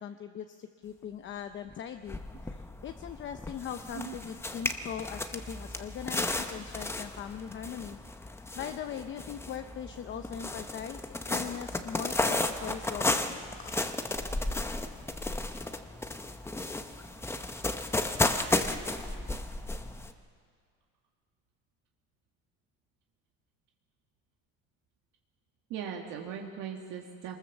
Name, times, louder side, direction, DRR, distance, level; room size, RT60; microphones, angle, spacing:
voice 1, 0.0-8.0 8.3-13.8, left 8 dB, 35° left, 7 dB, 0.7 m, -40 dB
sound 1, 1.7-1.8 2.1-20.1, left 2 dB, 10° left, 0.8 m, -34 dB
voice 2, 25.7-27.4, right 8 dB, 75° right, 1 dB, 1.8 m, -39 dB
23.0 x 20.0 x 7.2 m, 2.1 s
cardioid pair, 150°, 32 cm